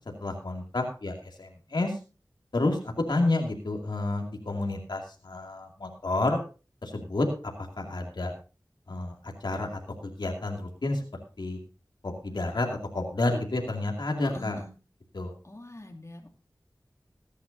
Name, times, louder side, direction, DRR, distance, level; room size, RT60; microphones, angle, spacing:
voice 1, 0.2-1.9 2.5-2.8 3.1-6.4 6.8-8.3 8.9-11.0 11.4-11.6 12.0-14.6 15.1-15.3, left 2 dB, 85° left, 2 dB, 2.5 m, -30 dB
voice 2, 14.2-14.7 15.4-16.3, left 1 dB, 40° left, 2 dB, 2.5 m, -43 dB
20.0 x 10.0 x 2.7 m, 0.34 s
wide cardioid pair, 45°, 7 cm